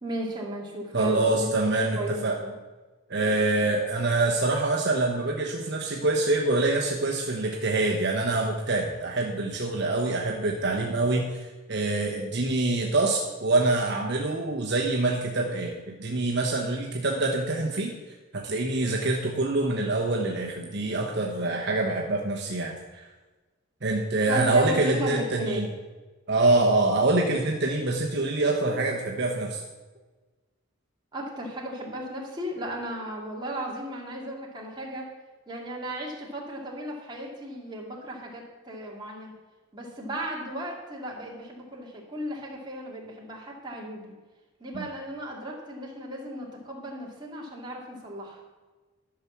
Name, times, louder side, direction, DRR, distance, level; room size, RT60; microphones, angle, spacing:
voice 1, 0.0-1.5 1.9-2.5 24.3-25.7 31.1-35.1 35.5-39.3 39.7-44.1 44.6-48.4, equal, 20° right, -2 dB, 2.1 m, -35 dB
voice 2, 0.9-2.4 3.1-11.4 11.7-18.0 18.3-23.1 23.8-25.7 26.3-29.6 44.7-44.9, right 2 dB, 50° right, 0 dB, 1.0 m, -25 dB
11.5 x 5.9 x 7.2 m, 1.3 s
head